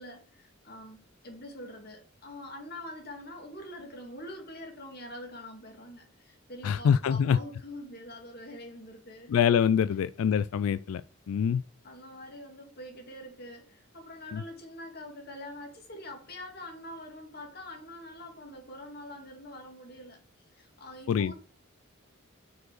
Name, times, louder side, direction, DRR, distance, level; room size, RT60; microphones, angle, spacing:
voice 1, 0.0-9.3 11.8-20.2 20.5-21.3, left 1 dB, 50° left, 2.2 m, -45 dB
voice 2, 6.6-7.4 9.3-11.0 11.3-11.6 14.3-14.4 21.1-21.3, left 7 dB, 90° left, 0.3 m, -25 dB
6.5 x 4.7 x 6.4 m
head